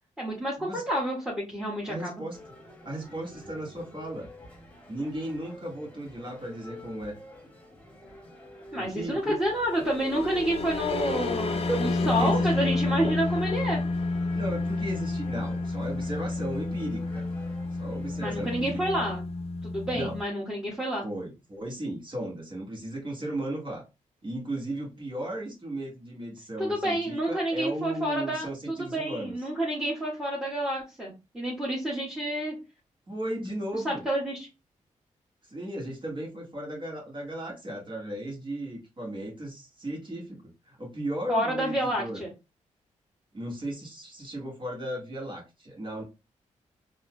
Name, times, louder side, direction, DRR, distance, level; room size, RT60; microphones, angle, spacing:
voice 1, 0.2-2.2 8.7-13.8 18.2-19.2 19.6-21.0 26.6-28.5 28.8-32.5 33.8-34.5 41.3-42.3, right 1 dB, 5° right, 1.5 m, -29 dB
voice 2, 1.9-2.4 2.8-4.3 4.9-7.2 8.7-9.4 11.7-12.5 12.8-12.9 14.3-17.3 17.7-18.8 19.9-20.2 21.0-23.8 24.2-29.3 33.1-34.0 35.4-42.2 43.3-46.0, right 1 dB, 40° right, 1.6 m, -35 dB
sound 1, 2.3-19.1, left 1 dB, 10° left, 1.6 m, -47 dB
sound 2, 9.5-20.2, left 3 dB, 50° left, 0.5 m, -30 dB
4.1 x 2.6 x 2.2 m
cardioid pair, 60°, 13 cm